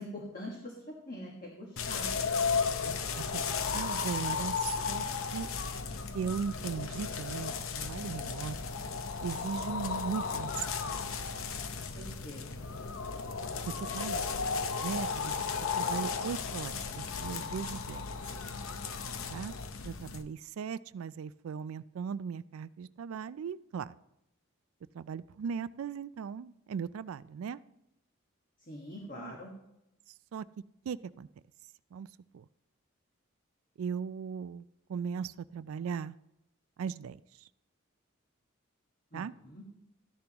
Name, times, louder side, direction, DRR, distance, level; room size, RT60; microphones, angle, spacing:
voice 1, 0.0-2.1 11.7-12.6 28.6-29.5 39.1-39.6, left 1 dB, 40° left, -1 dB, 1.4 m, -44 dB
sound 1, 1.8-20.2, left 5 dB, 80° left, 0.7 m, -35 dB
voice 2, 2.8-5.0 5.3-5.5 6.1-8.6 9.2-11.1 13.7-14.3 14.8-15.4 15.8-18.0 19.3-19.5 19.8-23.9 24.9-27.6 29.1-29.4 30.3-30.4 30.9-31.3 31.9-32.1 32.3-32.5 33.8-34.6 34.9-36.1 36.8-37.5 39.1-39.3, right 6 dB, 80° right, 16 dB, 0.3 m, -38 dB
sound 2, 6.5-17.7, equal, ahead, 3.4 m, -55 dB
13.5 x 10.5 x 3.0 m, 0.85 s
head